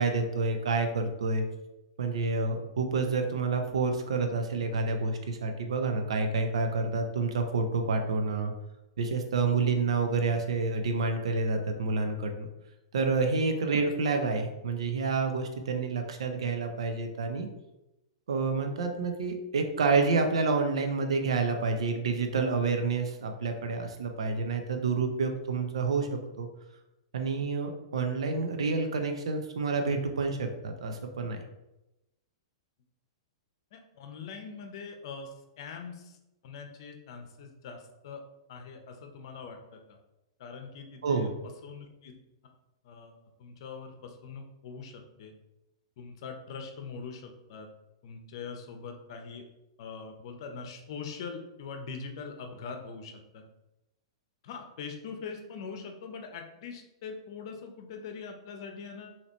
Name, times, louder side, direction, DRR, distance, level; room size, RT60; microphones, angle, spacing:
voice 1, 0.0-1.4 2.0-8.5 9.0-12.5 12.9-17.5 18.3-26.5 27.1-31.4 41.0-41.3, right 4 dB, 85° right, 5 dB, 0.6 m, -28 dB
voice 2, 33.7-36.2 36.4-38.2 38.5-40.0 40.4-42.2 42.8-43.1 43.4-45.3 46.0-47.7 48.0-49.4 49.8-53.4 54.4-59.2, left 5 dB, 60° left, 5 dB, 0.7 m, -42 dB
4.1 x 2.9 x 2.9 m, 0.94 s
hypercardioid pair, 135°, 3 cm